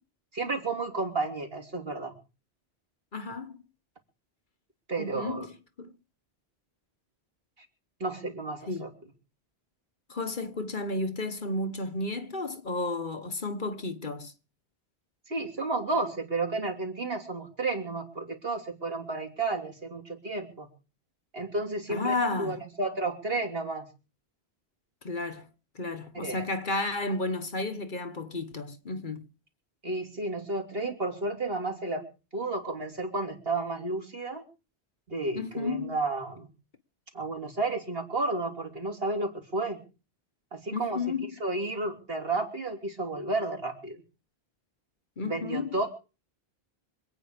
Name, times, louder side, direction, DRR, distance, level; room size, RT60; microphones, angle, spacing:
voice 1, 0.3-2.1 4.9-5.5 8.0-8.9 15.3-20.7 21.3-23.8 26.2-26.4 29.8-32.0 32.3-34.4 35.1-36.5 37.1-39.8 40.5-41.0 41.4-44.0 45.2-45.9, right 2 dB, 65° right, 3.4 m, -32 dB
voice 2, 3.1-3.6 5.0-5.5 5.8-5.9 8.7-8.8 10.1-14.3 21.9-22.6 25.0-25.5 25.7-29.3 35.3-36.0 40.7-41.4 45.2-45.9, left 2 dB, 50° left, 1.4 m, -32 dB
25.5 x 9.2 x 5.1 m
omnidirectional pair, 1.1 m